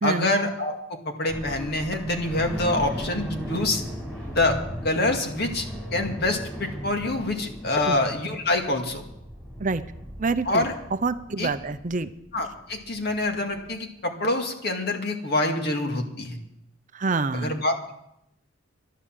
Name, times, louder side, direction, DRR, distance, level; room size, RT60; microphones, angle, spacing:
voice 1, 0.0-3.8 4.3-4.6 4.8-5.7 5.9-9.0 10.5-10.7 11.4-11.5 12.3-16.4 17.3-17.9, left 2 dB, 55° left, 3 dB, 2.0 m, -26 dB
sound 1, 1.3-13.7, equal, 5° left, 4.9 m, -37 dB
voice 2, 10.2-10.6 11.0-12.1 16.9-17.6, right 3 dB, 40° right, 11 dB, 0.6 m, -26 dB
12.0 x 11.0 x 7.4 m, 0.81 s
head